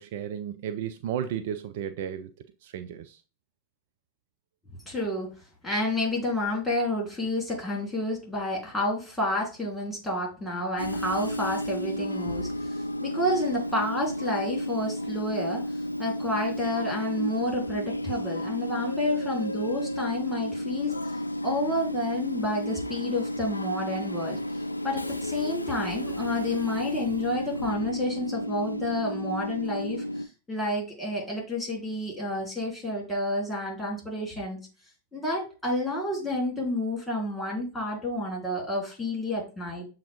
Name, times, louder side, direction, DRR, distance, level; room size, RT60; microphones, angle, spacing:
voice 1, 0.0-2.3 2.6-3.2, right 9 dB, 50° right, 0.3 m, -33 dB
voice 2, 4.9-5.3 5.6-15.6 16.0-21.0 21.4-24.4 24.8-34.6 35.1-39.9, left 1 dB, 5° left, 2.6 m, -30 dB
Train / Subway metro underground, 10.8-30.3, left 1 dB, 85° left, 0.3 m, -32 dB
7.0 x 2.5 x 3.0 m
figure-of-eight pair, 90°, 0 cm